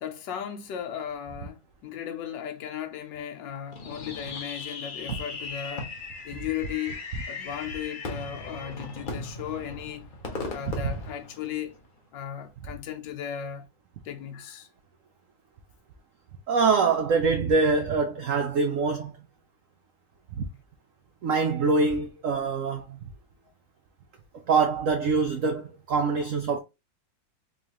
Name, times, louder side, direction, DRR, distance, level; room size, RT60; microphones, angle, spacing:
voice 1, 0.0-5.9 6.2-7.0 7.3-10.1 10.5-11.8 12.1-13.6 14.0-14.7, left 9 dB, 75° left, 1.4 m, -36 dB
Fireworks, 3.7-11.9, left 3 dB, 50° left, 0.6 m, -38 dB
voice 2, 16.5-19.1 20.4-20.5 21.2-23.0 24.5-26.6, right 4 dB, 85° right, 0.7 m, -24 dB
3.8 x 3.2 x 2.8 m
omnidirectional pair, 2.0 m